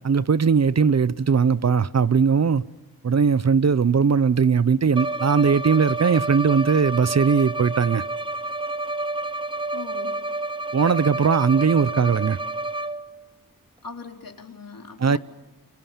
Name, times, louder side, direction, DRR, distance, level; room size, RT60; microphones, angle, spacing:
voice 1, 0.0-2.6 3.0-8.0 10.7-12.4 15.0-15.2, right 6 dB, 45° right, 0.8 m, -19 dB
Bowed string instrument, 4.9-13.2, right 2 dB, 15° right, 0.8 m, -29 dB
voice 2, 9.7-10.2 13.8-15.2, left 4 dB, 65° left, 3.7 m, -39 dB
29.5 x 22.5 x 7.4 m
cardioid pair, 60°, 36 cm